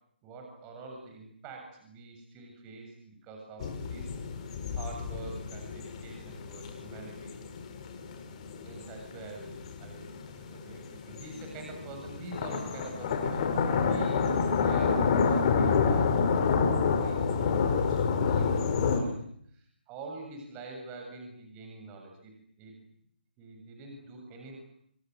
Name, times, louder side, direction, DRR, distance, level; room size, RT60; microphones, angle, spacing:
voice 1, 0.2-4.2 4.7-7.4 8.6-16.1 16.8-19.1 19.5-22.8 23.4-24.7, right 3 dB, 20° right, 2 dB, 7.5 m, -46 dB
sound 1, 3.6-19.0, left 5 dB, 35° left, 4.9 m, -29 dB
26.5 x 24.5 x 8.1 m, 0.68 s
hypercardioid pair, 155°, 6 cm